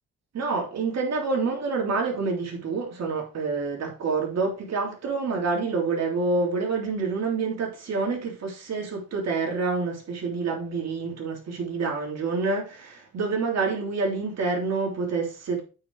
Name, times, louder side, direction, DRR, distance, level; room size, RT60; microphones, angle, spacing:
voice 1, 0.3-15.6, right 4 dB, 60° right, 3.4 m, -27 dB
8.5 x 5.0 x 4.7 m
cardioid pair, 90°, 30 cm